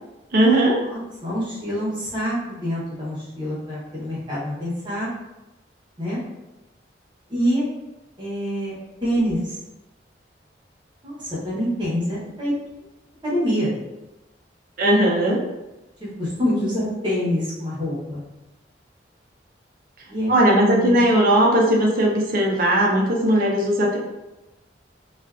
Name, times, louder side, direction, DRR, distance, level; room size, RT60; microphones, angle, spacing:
voice 1, 0.3-0.8 14.8-15.4 20.3-24.0, right 1 dB, 50° right, -2 dB, 0.5 m, -18 dB
voice 2, 0.8-5.1 6.0-6.2 7.3-7.7 8.2-8.7 9.0-9.6 11.0-12.5 13.2-13.7 16.0-18.2 20.1-21.0, equal, 25° right, -8 dB, 0.8 m, -26 dB
2.4 x 2.3 x 2.3 m, 1.0 s
head